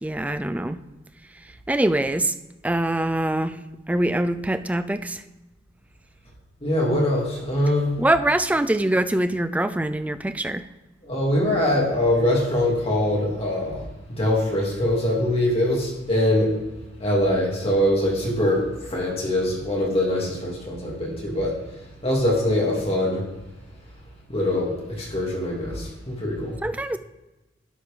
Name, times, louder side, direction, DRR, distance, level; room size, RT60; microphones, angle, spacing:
voice 1, 0.0-0.8 1.7-2.3 2.6-3.6 3.9-5.2 8.0-10.6 26.6-27.0, right 1 dB, 10° right, 11 dB, 0.3 m, -23 dB
voice 2, 6.6-7.9 11.0-13.8 14.1-16.5 17.0-21.5 22.0-23.2 24.3-26.6, left 1 dB, 30° left, -3 dB, 2.6 m, -23 dB
11.5 x 4.9 x 5.1 m, 1.0 s
head